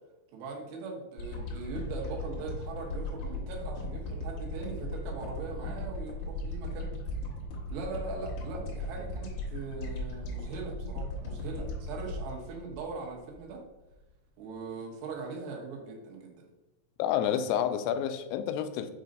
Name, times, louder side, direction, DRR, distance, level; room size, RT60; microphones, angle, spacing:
voice 1, 0.3-6.9 7.7-13.6 14.4-16.5, right 4 dB, 90° right, 0 dB, 3.2 m, -40 dB
sound 1, 1.2-13.5 14.0-14.1, left 1 dB, 65° left, 2.1 m, -37 dB
voice 2, 17.0-18.9, left 9 dB, 90° left, 8 dB, 2.7 m, -29 dB
6.9 x 2.6 x 5.2 m, 1.0 s
omnidirectional pair, 4.7 m